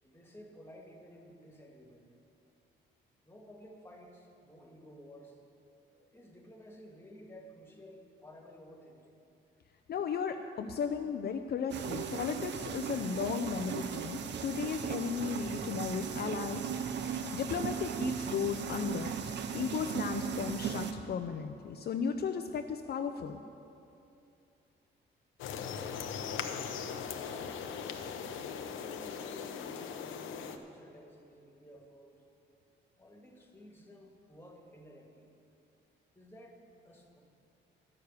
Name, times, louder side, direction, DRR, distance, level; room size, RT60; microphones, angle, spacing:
voice 1, 0.0-2.0 3.2-5.4 5.9-9.2 28.6-32.2 33.0-35.3 36.1-36.6 36.8-37.2, equal, 10° left, 1 dB, 1.9 m, -54 dB
voice 2, 9.9-16.6 17.0-23.4, left 6 dB, 55° left, 6 dB, 0.6 m, -35 dB
sound 1, 11.7-20.9, right 7 dB, 60° right, 0.8 m, -37 dB
sound 2, 25.4-30.6, left 7 dB, 80° left, 0.8 m, -39 dB
12.0 x 6.7 x 8.3 m, 2.7 s
cardioid pair, 90°, 20 cm